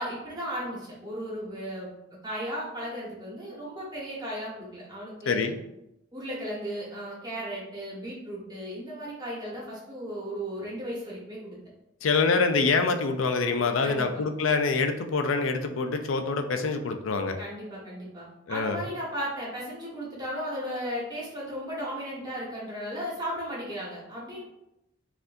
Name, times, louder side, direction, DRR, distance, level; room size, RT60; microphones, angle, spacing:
voice 1, 0.0-1.9 2.2-5.5 6.1-11.6 13.8-14.1 17.4-24.4, equal, 20° right, -5 dB, 1.2 m, -35 dB
voice 2, 5.3-5.6 12.0-17.4 18.5-18.8, left 4 dB, 85° left, 6 dB, 0.5 m, -25 dB
5.8 x 2.6 x 2.6 m, 0.90 s
head